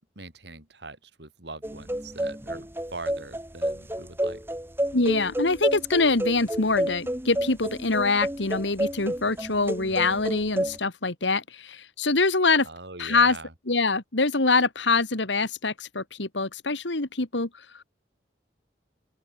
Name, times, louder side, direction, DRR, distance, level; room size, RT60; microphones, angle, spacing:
voice 1, 0.1-4.4 9.8-10.2 12.6-13.5, right 3 dB, 70° right, 4.9 m, -42 dB
sound 1, 1.6-10.8, right 1 dB, 10° right, 1.8 m, -30 dB
voice 2, 4.9-12.7 13.0-13.4 13.7-17.5, left 3 dB, 85° left, 2.3 m, -24 dB
open air
head